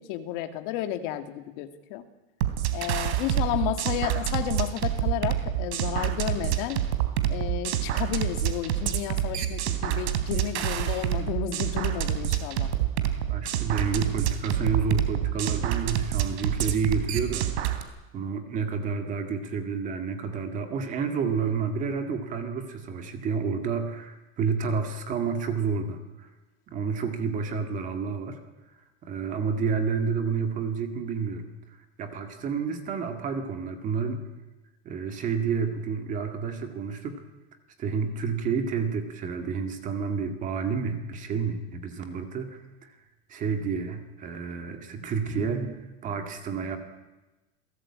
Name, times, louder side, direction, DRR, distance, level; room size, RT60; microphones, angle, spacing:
voice 1, 0.0-2.0 2.7-6.8 7.3-12.7, left 12 dB, 45° left, 7 dB, 2.2 m, -32 dB
sound 1, 2.4-17.8, right 11 dB, 85° right, 3.4 m, -27 dB
voice 2, 13.3-17.7 18.1-26.3 26.7-28.4 28.7-28.8 29.0-34.2 34.9-37.2 37.8-43.0 43.3-46.8, right 5 dB, 25° right, 6 dB, 2.0 m, -30 dB
28.5 x 18.5 x 8.7 m, 1.1 s
supercardioid pair, 180°, 33 cm